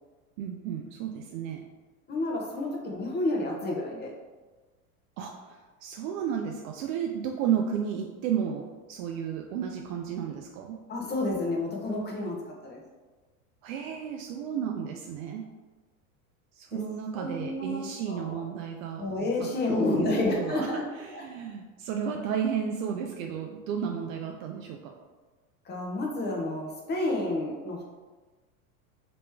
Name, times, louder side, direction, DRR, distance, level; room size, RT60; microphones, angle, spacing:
voice 1, 0.4-1.6 5.2-10.8 13.6-15.4 16.5-19.0 19.4-20.7 20.9-24.9, right 8 dB, 65° right, 2 dB, 0.5 m, -33 dB
voice 2, 2.1-4.1 10.9-12.8 16.7-16.8 17.1-17.8 18.1-18.4 19.0-20.9 21.1-21.2 25.6-27.8, left 2 dB, 25° left, -1 dB, 0.8 m, -30 dB
3.0 x 3.0 x 3.4 m, 1.3 s
hypercardioid pair, 105°, 44 cm